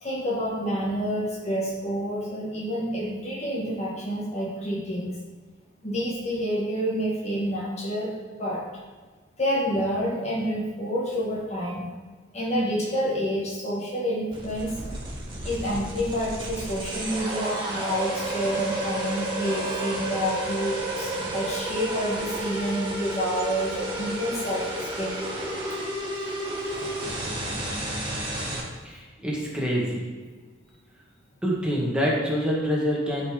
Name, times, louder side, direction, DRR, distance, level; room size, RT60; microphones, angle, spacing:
voice 1, 0.0-5.1 5.8-8.1 8.4-8.6 9.4-11.9 12.3-14.7 15.4-25.2, equal, 35° left, -3 dB, 1.4 m, -28 dB
sound 1, 14.3-28.6, right 1 dB, 25° right, 2.1 m, -31 dB
voice 2, 28.8-30.0 31.4-33.3, equal, 5° right, -5 dB, 1.7 m, -26 dB
12.0 x 4.4 x 5.0 m, 1.4 s
head